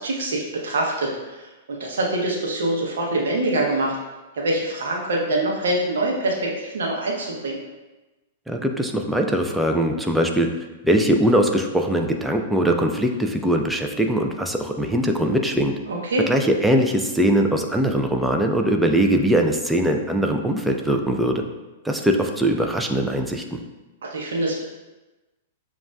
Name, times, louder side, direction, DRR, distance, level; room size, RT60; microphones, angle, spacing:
voice 1, 0.0-4.0 4.3-7.6 15.9-16.2 24.0-24.6, right 1 dB, 65° right, -1 dB, 0.7 m, -25 dB
voice 2, 8.5-10.5 10.8-15.7 16.3-21.4 21.8-23.6, right 1 dB, 5° right, 3 dB, 0.4 m, -21 dB
7.0 x 2.4 x 2.3 m, 1.1 s
figure-of-eight pair, 105°, 0 cm